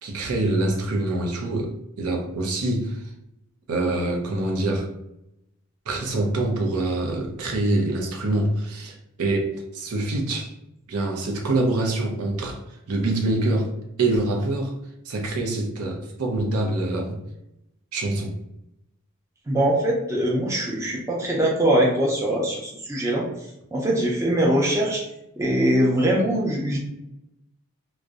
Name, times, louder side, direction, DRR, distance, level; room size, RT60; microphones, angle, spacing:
voice 1, 0.0-3.0 3.7-4.9 5.9-10.5 10.9-12.6 12.9-13.7 14.0-14.7 15.1-17.2 17.9-18.4, right 2 dB, 90° right, 0.5 m, -25 dB
voice 2, 19.5-23.3 23.7-25.1 25.4-26.8, right 1 dB, 15° right, 0.4 m, -22 dB
2.6 x 2.0 x 2.3 m
head